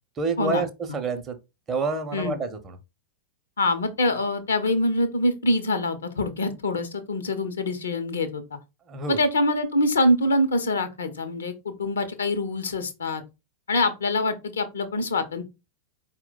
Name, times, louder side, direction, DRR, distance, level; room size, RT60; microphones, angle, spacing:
voice 1, 0.2-0.7 0.9-1.4 1.7-2.8 8.9-9.2, right 4 dB, 25° right, 0.7 m, -28 dB
voice 2, 3.6-8.6 9.1-13.2 13.7-15.4, left 1 dB, 70° left, 0.6 m, -25 dB
4.4 x 2.1 x 3.8 m
figure-of-eight pair, 90°, 0 cm